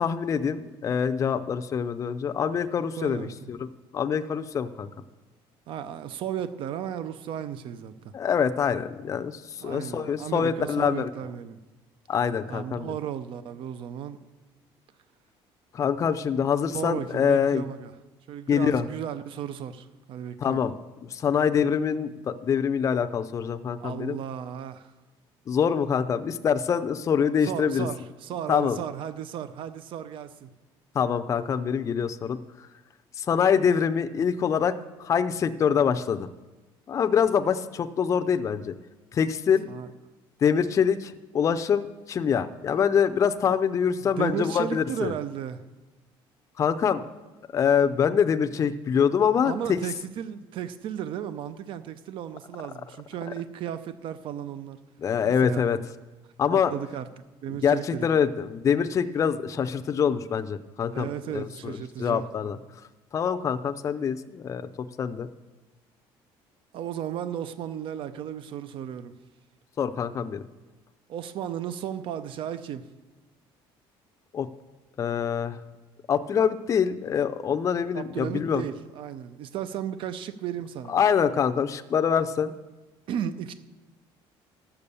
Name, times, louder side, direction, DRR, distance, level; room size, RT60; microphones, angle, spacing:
voice 1, 0.0-4.9 8.1-11.1 12.1-12.9 15.7-17.6 18.5-18.9 20.4-20.7 21.0-24.2 25.5-27.9 28.5-28.8 30.9-32.7 33.2-36.3 36.9-38.7 39.1-39.7 40.4-45.1 46.6-47.0 47.5-49.8 53.3-53.4 55.0-55.8 56.4-56.7 57.6-62.6 63.1-64.7 65.0-65.3 69.8-70.4 74.3-74.5 75.0-75.6 76.1-78.6 80.9-82.5, left 7 dB, 30° left, 0.5 m, -25 dB
voice 2, 3.0-3.5 5.7-8.1 9.6-11.6 12.5-14.2 16.7-17.9 18.3-20.6 23.8-24.9 27.4-30.5 39.7-39.9 44.0-45.6 49.4-54.8 55.2-55.6 56.5-57.0 57.4-58.1 60.9-62.2 66.7-69.1 71.1-72.9 77.9-81.0 83.1-83.5, right 9 dB, 60° right, 0.6 m, -34 dB
13.0 x 6.9 x 6.9 m
cardioid pair, 145°, 10 cm